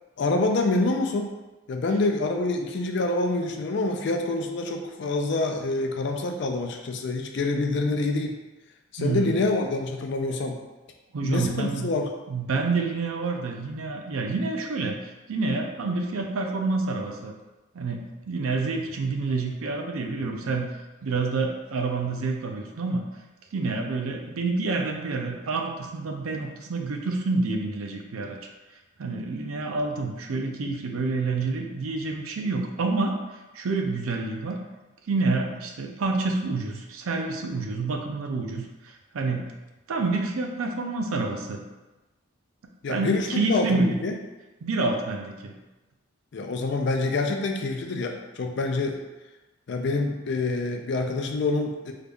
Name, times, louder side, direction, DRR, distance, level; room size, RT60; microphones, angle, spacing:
voice 1, 0.2-1.3 1.7-8.4 8.9-10.6 11.2-12.1 42.8-44.1 46.3-49.0 49.7-51.9, left 2 dB, 55° left, 3 dB, 0.4 m, -26 dB
voice 2, 9.0-9.3 11.1-11.9 12.3-14.9 15.3-17.3 17.7-20.7 21.0-23.0 23.5-28.4 29.0-33.1 33.5-34.6 35.1-39.5 39.9-41.6 42.9-44.0 44.6-45.5, right 3 dB, 85° right, 2 dB, 0.5 m, -28 dB
3.8 x 2.3 x 3.5 m, 1.1 s
head